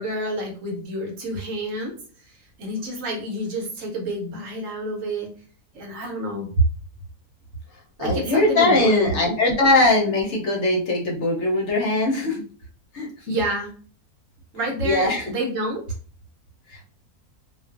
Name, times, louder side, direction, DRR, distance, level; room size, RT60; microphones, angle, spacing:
voice 1, 0.0-1.9 2.2-5.3 5.7-6.5 8.0-9.3 13.3-13.7 14.5-15.8, right 1 dB, 65° right, 1 dB, 1.0 m, -29 dB
voice 2, 8.0-12.4 12.9-13.3 14.8-15.3 16.7-16.8, left 2 dB, 60° left, -1 dB, 0.8 m, -21 dB
2.5 x 2.4 x 2.4 m, 0.42 s
omnidirectional pair, 1.6 m